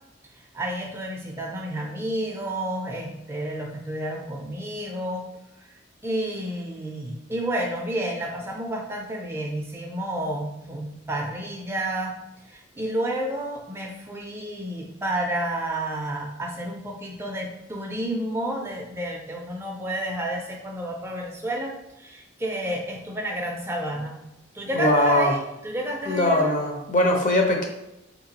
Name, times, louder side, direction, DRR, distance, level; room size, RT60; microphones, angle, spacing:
voice 1, 0.3-5.2 6.0-12.1 12.5-24.2 24.5-26.5, right 1 dB, 15° right, 0 dB, 0.4 m, -30 dB
voice 2, 24.7-25.3 26.1-27.7, left 1 dB, 40° left, 1 dB, 0.6 m, -21 dB
4.4 x 2.9 x 2.7 m, 0.91 s
head